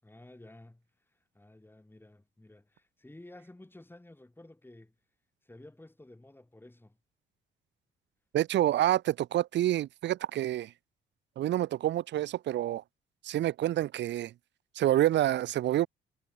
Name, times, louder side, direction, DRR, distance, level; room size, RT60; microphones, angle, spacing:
voice 1, 0.0-5.0 5.4-7.0, left 1 dB, 10° left, 7.1 m, -53 dB
voice 2, 8.3-10.7 11.4-12.8 13.2-14.3 14.8-15.9, right 13 dB, 65° right, 0.6 m, -28 dB
cardioid pair, 90°, 20 cm